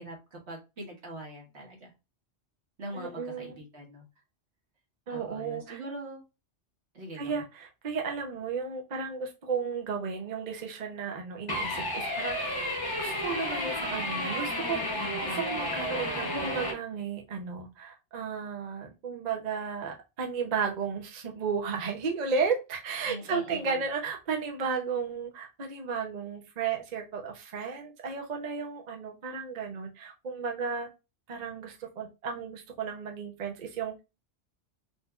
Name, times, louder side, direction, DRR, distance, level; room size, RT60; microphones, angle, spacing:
voice 1, 0.0-1.9 2.8-4.1 5.1-6.2 6.9-7.4 23.1-23.8, right 1 dB, 65° right, 0 dB, 1.5 m, -42 dB
voice 2, 2.9-3.6 5.1-5.8 7.1-30.9 31.3-34.0, right 5 dB, 45° right, 2 dB, 0.6 m, -34 dB
sound 1, 11.5-16.7, left 1 dB, 25° left, 0.7 m, -32 dB
4.1 x 2.5 x 2.2 m, 0.26 s
omnidirectional pair, 1.2 m